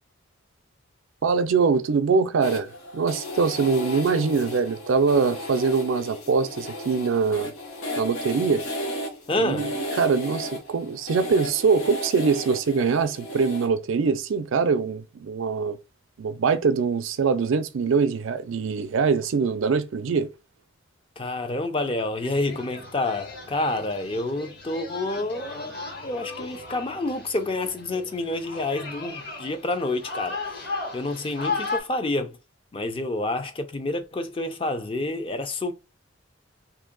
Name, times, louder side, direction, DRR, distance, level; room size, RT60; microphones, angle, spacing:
voice 1, 1.2-7.5 8.0-8.6 9.4-15.8 16.2-20.3, right 5 dB, 70° right, 0.4 m, -23 dB
sound 1, 2.4-13.7, left 1 dB, 90° left, 1.2 m, -35 dB
voice 2, 9.3-9.8 21.2-30.4 30.9-32.4 32.7-35.7, left 2 dB, 25° left, 0.4 m, -28 dB
sound 2, 22.2-31.8, left 3 dB, 50° left, 1.4 m, -36 dB
2.8 x 2.7 x 3.8 m
head